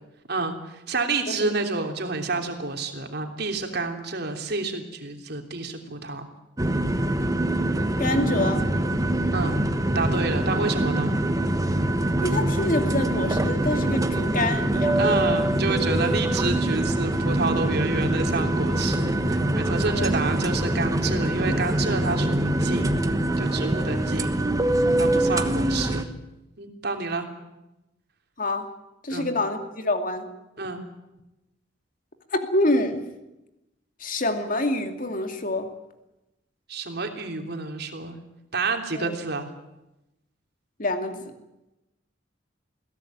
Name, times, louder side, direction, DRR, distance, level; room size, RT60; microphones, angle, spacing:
voice 1, 0.9-6.3 9.3-9.6 9.9-11.2 15.0-23.0 23.4-24.4 25.0-26.1 26.6-27.3 29.1-29.3 30.6-30.8 36.7-38.2 38.5-39.5, right 3 dB, 60° right, 4 dB, 3.3 m, -29 dB
sound 1, 6.6-26.0, right 1 dB, 20° right, 1.2 m, -24 dB
voice 2, 8.0-8.6 12.2-15.1 19.9-20.0 21.5-21.6 28.4-28.7 29.0-30.3 32.3-33.1 34.0-35.7 38.9-39.1 40.8-41.3, left 2 dB, 45° left, 6 dB, 2.5 m, -26 dB
22.0 x 16.5 x 9.3 m, 0.94 s
head